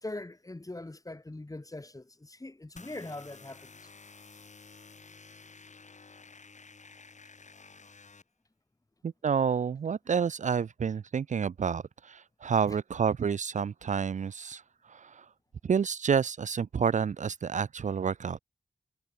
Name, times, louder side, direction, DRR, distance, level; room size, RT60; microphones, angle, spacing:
voice 1, 0.0-3.9 12.7-12.8, left 2 dB, 25° left, 3.3 m, -42 dB
sound 1, 2.8-8.2, left 4 dB, 60° left, 4.8 m, -52 dB
voice 2, 9.0-14.6 14.9-15.2 15.6-18.4, right 6 dB, 60° right, 0.5 m, -29 dB
cardioid pair, 60°, 14 cm